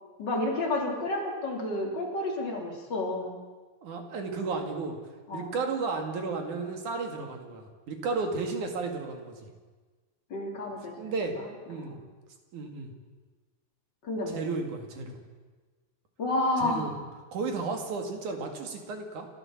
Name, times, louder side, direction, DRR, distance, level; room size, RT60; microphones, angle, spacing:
voice 1, 0.2-3.4 5.3-5.5 10.3-11.1 14.0-14.4 16.2-16.9, left 2 dB, 35° left, 0 dB, 3.8 m, -30 dB
voice 2, 3.8-5.0 5.3-9.5 11.0-11.4 11.7-12.0 12.5-12.9 14.3-15.2 16.6-16.9 17.3-19.3, right 4 dB, 75° right, 4 dB, 3.7 m, -33 dB
30.0 x 12.5 x 7.3 m, 1.4 s
omnidirectional pair, 3.5 m